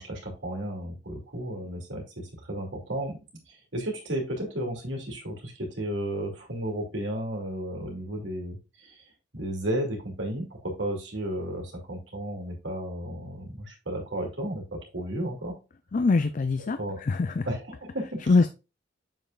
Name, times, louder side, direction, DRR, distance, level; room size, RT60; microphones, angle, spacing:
voice 1, 0.0-3.2 3.5-9.0 9.3-15.6 16.8-17.0 17.5-18.3, right 1 dB, 80° right, 0 dB, 2.6 m, -33 dB
voice 2, 15.9-17.5 18.3-18.5, left 3 dB, 45° left, 10 dB, 0.4 m, -23 dB
7.1 x 5.7 x 2.4 m, 0.29 s
head